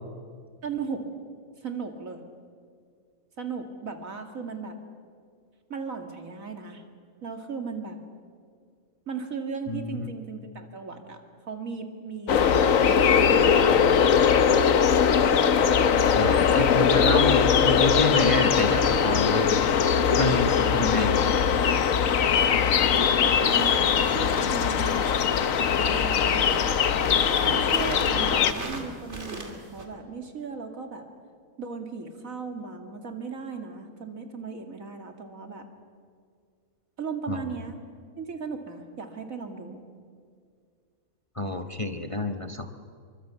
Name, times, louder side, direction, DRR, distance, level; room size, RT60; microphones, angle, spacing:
voice 1, 0.6-1.0 1.6-2.2 3.4-4.7 5.7-6.8 7.2-8.0 9.1-11.2 11.5-14.5 22.8-25.0 25.8-26.6 27.3-31.1 31.6-35.7 37.0-37.8 38.2-39.8, right 5 dB, 65° right, 5 dB, 2.7 m, -36 dB
voice 2, 9.7-10.1 16.1-19.7 20.2-21.1 37.3-37.4 41.4-42.7, left 1 dB, 25° left, 6 dB, 1.1 m, -28 dB
sound 1, 12.3-28.5, left 7 dB, 65° left, 1.3 m, -21 dB
sound 2, 23.5-29.9, right 2 dB, 50° right, 2.8 m, -40 dB
26.0 x 24.0 x 8.3 m, 2.1 s
omnidirectional pair, 1.5 m